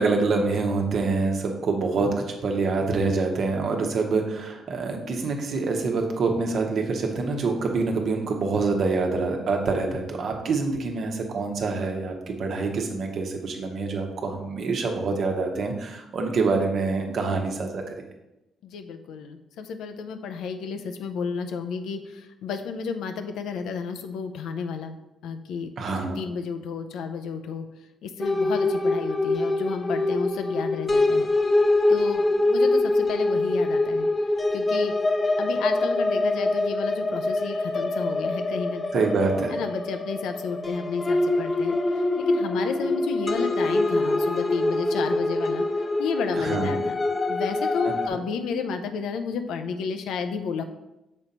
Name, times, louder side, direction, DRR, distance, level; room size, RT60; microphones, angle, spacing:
voice 1, 0.0-17.9 25.8-26.2 38.9-39.6 46.4-46.7 47.8-48.2, right 4 dB, 60° right, 3 dB, 1.0 m, -26 dB
voice 2, 18.6-25.0 25.2-25.7 26.2-27.7 28.0-31.3 31.9-34.1 34.5-34.9 35.4-38.9 39.5-45.7 46.0-46.9 47.3-50.6, left 5 dB, 85° left, 8 dB, 0.6 m, -32 dB
sound 1, 28.2-48.1, left 2 dB, 25° left, 0.6 m, -24 dB
6.3 x 3.9 x 4.2 m, 0.95 s
cardioid pair, 90°, 0 cm